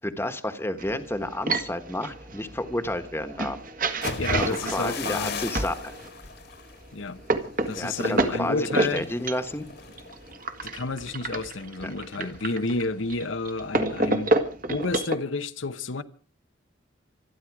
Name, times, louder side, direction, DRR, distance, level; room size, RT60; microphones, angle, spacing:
voice 1, 0.0-3.6 4.4-5.9 7.8-9.7 11.8-12.3, left 1 dB, 10° left, 1.4 m, -31 dB
sound 1, 0.8-6.1 6.7-15.2, right 2 dB, 45° right, 1.8 m, -30 dB
sound 2, 3.9-11.7 12.1-12.4 12.8-13.2, left 4 dB, 55° left, 1.8 m, -39 dB
voice 2, 4.0-5.4 6.9-7.2 7.7-9.1 10.6-14.3 14.7-16.0, left 3 dB, 80° left, 1.0 m, -30 dB
26.5 x 10.5 x 4.8 m
head